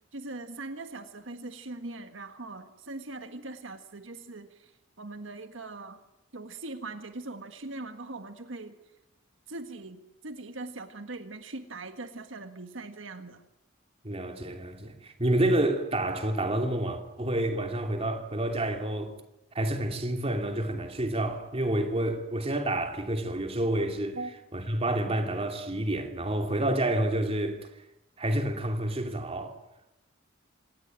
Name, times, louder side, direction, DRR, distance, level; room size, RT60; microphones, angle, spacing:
voice 1, 0.1-4.7 5.0-6.0 6.3-8.8 9.5-13.4 24.1-24.3, right 2 dB, 75° right, 1.6 m, -41 dB
voice 2, 14.0-19.1 19.5-24.2 24.5-27.7 28.2-29.6, right 1 dB, 30° right, 2.9 m, -29 dB
26.0 x 19.0 x 9.0 m
head